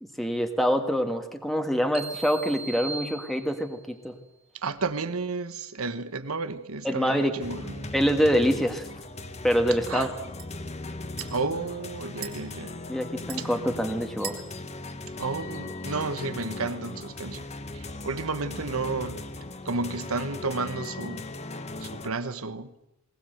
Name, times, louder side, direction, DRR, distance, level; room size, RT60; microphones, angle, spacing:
voice 1, 0.2-4.1 6.8-7.3 7.9-8.9 9.4-10.1 12.9-14.4, equal, ahead, 1.6 m, -25 dB
sound 1, 1.9-3.9, right 4 dB, 30° right, 1.3 m, -39 dB
voice 2, 4.6-7.9 9.9-10.1 11.3-12.8 13.4-13.5 15.2-17.5 17.7-19.2 19.6-21.2 21.8-22.7, right 3 dB, 90° right, 1.3 m, -32 dB
sound 2, 7.4-22.1, left 2 dB, 30° left, 1.2 m, -38 dB
sound 3, 8.2-16.0, right 7 dB, 45° right, 4.1 m, -47 dB
20.5 x 20.0 x 8.0 m
head